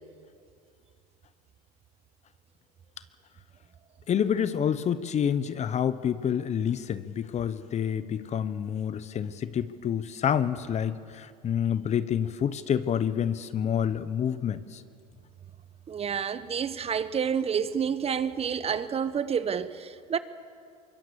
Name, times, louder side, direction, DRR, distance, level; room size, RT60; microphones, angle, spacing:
voice 1, 4.1-14.8, left 8 dB, 35° left, 1.1 m, -28 dB
voice 2, 15.9-20.2, right 7 dB, 30° right, 1.0 m, -29 dB
24.0 x 22.0 x 7.0 m
hypercardioid pair, 90°, 19 cm